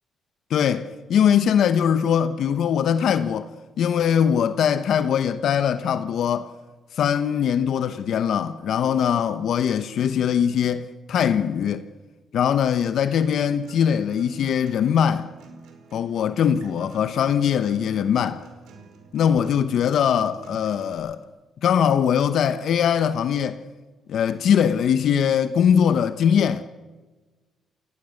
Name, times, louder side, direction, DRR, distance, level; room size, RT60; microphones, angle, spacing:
voice 1, 0.5-3.5 3.8-6.5 7.0-11.8 12.3-15.3 15.9-18.4 19.1-21.2 21.6-23.6 24.1-26.6, left 8 dB, 70° left, 0.9 m, -21 dB
Acoustic guitar, 12.9-20.9, right 4 dB, 80° right, 4.8 m, -48 dB
28.5 x 19.5 x 6.5 m
cardioid pair, 90°, 0 cm